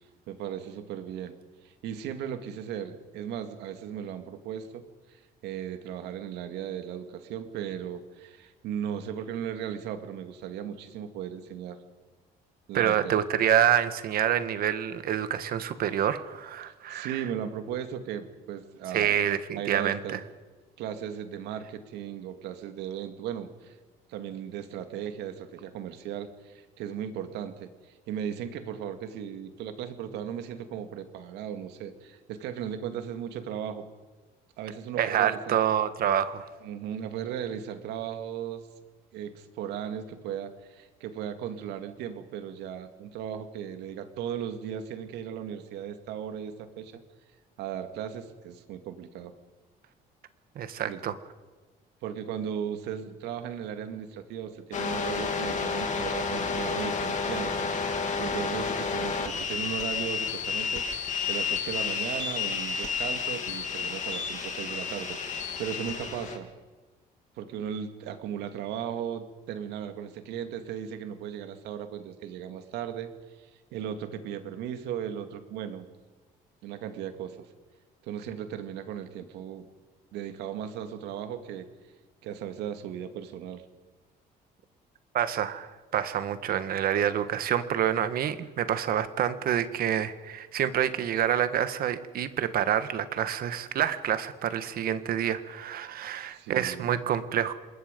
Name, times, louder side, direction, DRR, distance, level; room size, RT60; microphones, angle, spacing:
voice 1, 0.3-1.3 1.6-4.8 5.1-11.8 12.7-13.2 16.9-19.2 19.6-20.2 20.8-23.8 24.1-33.9 34.6-35.6 36.6-38.7 39.1-46.9 47.6-49.3 50.9-51.0 52.0-66.5 67.4-73.1 73.4-75.9 76.6-77.5 78.0-79.7 80.1-81.7 82.2-83.6 96.3-97.0, right 9 dB, 85° right, 8 dB, 2.2 m, -37 dB
voice 2, 12.7-17.2 18.9-20.2 35.0-36.5 50.6-51.2 85.1-97.5, right 10 dB, 60° right, 12 dB, 1.6 m, -27 dB
sound 1, 54.7-66.4, left 5 dB, 45° left, 3.4 m, -31 dB
27.0 x 21.0 x 5.3 m, 1.3 s
cardioid pair, 110°, 17 cm